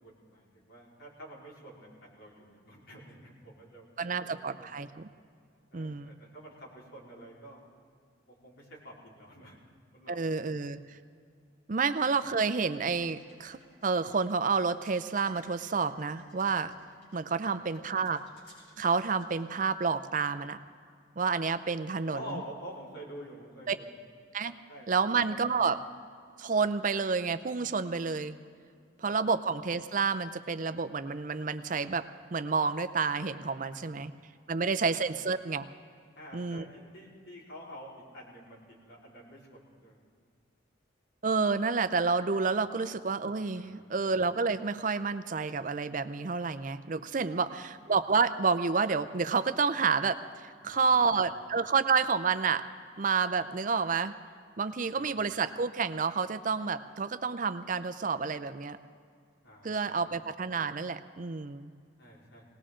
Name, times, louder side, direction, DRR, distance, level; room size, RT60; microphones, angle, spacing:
voice 1, 0.0-4.8 5.7-7.6 8.4-9.6 9.9-10.5 17.4-17.6 22.1-23.9 24.7-24.9 25.2-25.6 29.0-29.1 33.6-34.0 36.2-38.6 38.8-40.3 43.6-43.8 47.3-47.6 50.7-51.2 54.9-55.3 59.4-60.0 62.0-62.4, equal, 85° left, -5 dB, 4.2 m, -48 dB
voice 2, 4.0-5.1 5.7-6.1 10.1-10.8 11.7-16.7 17.1-18.3 18.8-20.6 21.2-22.2 23.7-23.8 24.3-24.6 24.9-25.8 26.4-28.4 29.0-34.1 34.5-35.6 36.3-36.6 41.2-52.6 53.0-54.2 54.6-58.8 59.6-61.7, right 5 dB, 40° right, 11 dB, 0.5 m, -29 dB
sound 1, 12.9-20.6, equal, 55° left, 5.3 m, -60 dB
20.5 x 18.5 x 3.8 m, 2.2 s
head